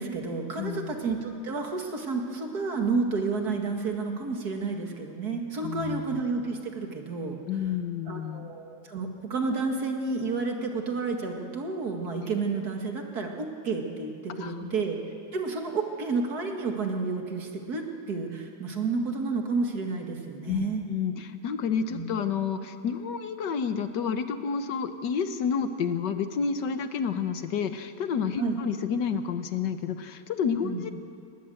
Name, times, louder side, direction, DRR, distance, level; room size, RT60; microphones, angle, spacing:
voice 1, 0.0-7.4 8.1-15.0 15.3-20.8 21.9-22.1 28.4-28.6 30.6-30.8, right 4 dB, 55° right, 3 dB, 2.4 m, -30 dB
voice 2, 0.6-1.0 5.6-6.2 7.5-8.5 12.1-12.3 14.3-14.7 20.5-30.9, left 6 dB, 70° left, 9 dB, 1.6 m, -30 dB
19.5 x 19.0 x 7.8 m, 2.4 s
omnidirectional pair, 2.0 m